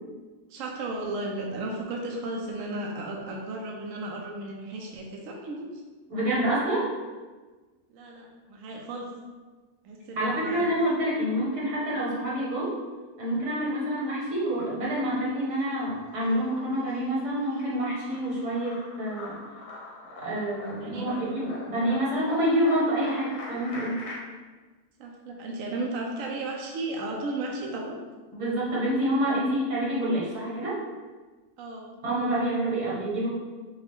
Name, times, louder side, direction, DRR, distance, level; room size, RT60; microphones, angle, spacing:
voice 1, 0.5-5.8 7.9-9.1 9.8-10.7 20.8-21.2 25.0-28.0 31.6-31.9, right 2 dB, 65° right, -1 dB, 0.9 m, -34 dB
voice 2, 6.1-6.9 10.2-12.7 13.2-19.4 20.2-24.0 28.3-30.8 32.0-33.3, right 1 dB, 85° right, -6 dB, 1.9 m, -27 dB
sound 1, 14.4-15.0 15.4-24.2, left 2 dB, 85° left, 1.4 m, -43 dB
5.6 x 2.4 x 3.5 m, 1.3 s
omnidirectional pair, 1.6 m